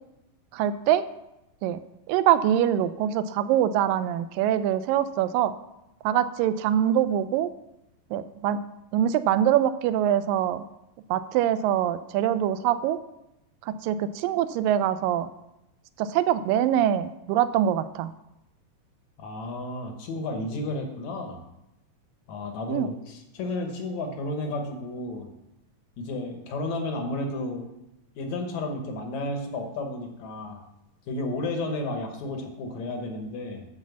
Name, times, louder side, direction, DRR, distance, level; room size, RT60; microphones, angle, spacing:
voice 1, 0.5-1.1 1.6-1.8 2.1-5.5 6.0-7.5 8.1-8.6 8.9-10.6 11.1-13.0 13.7-15.3 16.0-18.1 22.7-22.9, right 10 dB, 80° right, 13 dB, 2.2 m, -24 dB
voice 2, 19.2-21.4 22.3-25.3 26.0-27.7 28.2-30.6 31.1-33.7, left 2 dB, 65° left, 4 dB, 2.1 m, -32 dB
12.0 x 4.4 x 7.1 m, 0.89 s
omnidirectional pair, 4.1 m